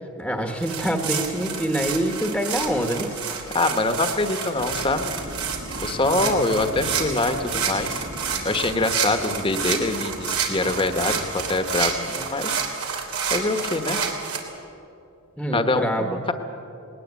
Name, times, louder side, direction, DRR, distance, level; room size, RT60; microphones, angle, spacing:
voice 1, 0.2-3.4 6.2-6.6 15.4-16.2, equal, ahead, 3 dB, 1.3 m, -26 dB
sound 1, 0.6-14.4, right 6 dB, 80° right, 3.1 m, -29 dB
voice 2, 3.5-5.1 5.8-8.0 8.4-12.6 13.3-14.0 15.5-16.3, left 2 dB, 25° left, 8 dB, 1.2 m, -24 dB
sound 2, 4.6-11.9, equal, 60° right, 2.3 m, -39 dB
20.5 x 18.5 x 8.4 m, 2.8 s
head